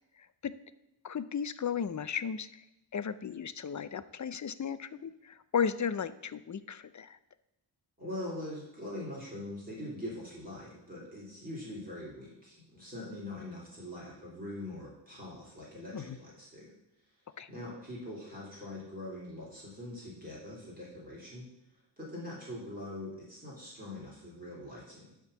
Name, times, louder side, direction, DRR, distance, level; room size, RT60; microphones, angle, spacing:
voice 1, 0.2-0.5 1.0-2.6 2.9-7.2 15.9-16.2 17.4-17.5, left 7 dB, 40° left, 14 dB, 0.4 m, -35 dB
voice 2, 8.0-16.7 17.5-21.5 22.0-25.1, left 1 dB, 20° right, -6 dB, 3.1 m, -43 dB
10.5 x 3.7 x 6.8 m, 0.87 s
wide cardioid pair, 105°, 46 cm